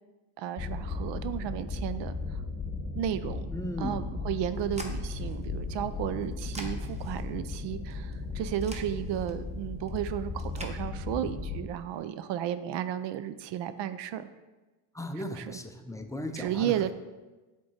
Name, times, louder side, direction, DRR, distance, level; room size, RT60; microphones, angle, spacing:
voice 1, 0.4-2.4 2.9-3.5 3.8-14.3 15.2-15.5 16.4-16.9, right 10 dB, 60° right, 12 dB, 0.5 m, -33 dB
sound 1, 0.6-11.7, left 3 dB, 30° left, 1.0 m, -36 dB
voice 2, 3.5-4.1 14.9-16.7, left 1 dB, 5° left, 6 dB, 0.4 m, -36 dB
sound 2, 4.2-10.7, right 1 dB, 15° right, 0.9 m, -48 dB
7.5 x 3.7 x 4.1 m, 1.2 s
supercardioid pair, 75°, 49 cm